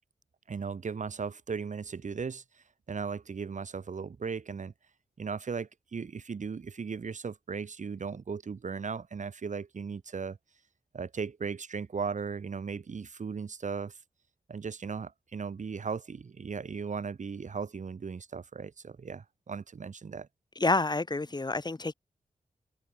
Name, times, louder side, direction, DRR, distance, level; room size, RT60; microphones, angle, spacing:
voice 1, 0.5-4.7 5.2-10.4 10.9-14.0 14.5-20.3, right 5 dB, 60° right, 2.4 m, -37 dB
voice 2, 20.6-21.9, left 3 dB, 30° left, 2.7 m, -28 dB
open air
wide cardioid pair, 85°, 14 cm